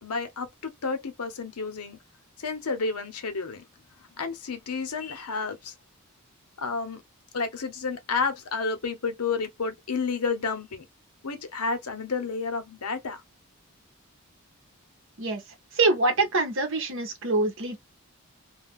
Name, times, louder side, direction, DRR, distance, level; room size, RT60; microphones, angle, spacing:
voice 1, 0.0-2.0 2.4-3.7 4.0-5.7 6.6-7.0 7.3-10.8 11.2-13.2, left 4 dB, 90° left, 0.8 m, -31 dB
voice 2, 15.7-17.8, right 3 dB, 60° right, 0.9 m, -25 dB
2.4 x 2.2 x 3.5 m
head